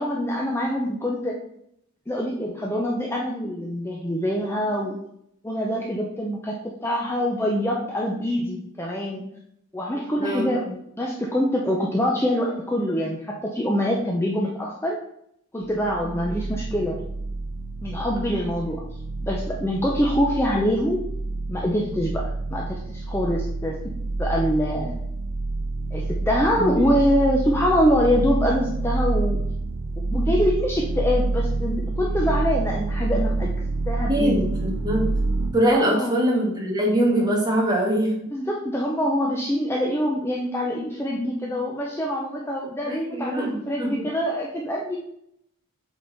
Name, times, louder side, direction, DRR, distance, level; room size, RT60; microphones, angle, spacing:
voice 1, 0.0-1.4 2.1-5.0 5.4-9.2 9.7-10.6 11.0-15.0 15.5-17.0 17.8-18.8 19.2-21.0 21.5-23.8 24.2-25.0 25.9-29.4 30.1-33.5 33.9-34.5 35.7-36.3 38.3-45.0, equal, 10° left, -2 dB, 0.6 m, -24 dB
sound 1, 15.6-35.5, right 2 dB, 65° right, 1.0 m, -28 dB
voice 2, 34.1-35.1 35.5-38.2 42.9-44.1, right 1 dB, 20° right, -2 dB, 1.5 m, -23 dB
7.6 x 4.0 x 4.0 m, 0.75 s
head